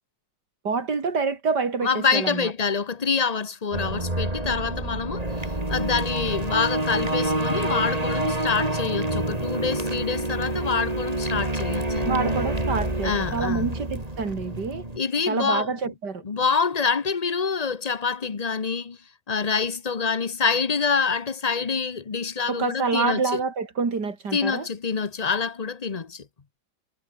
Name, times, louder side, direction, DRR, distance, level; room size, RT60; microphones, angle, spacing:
voice 1, 0.6-2.5 12.0-14.9 15.3-16.2 22.5-24.7, right 4 dB, 60° right, 3.6 m, -27 dB
voice 2, 1.8-5.2 5.7-12.1 13.0-13.7 15.0-15.7 16.2-19.0 19.3-23.4 24.3-26.2, left 5 dB, 30° left, 0.7 m, -26 dB
sound 1, 3.7-15.0, right 1 dB, 20° right, 4.1 m, -27 dB
omnidirectional pair, 2.0 m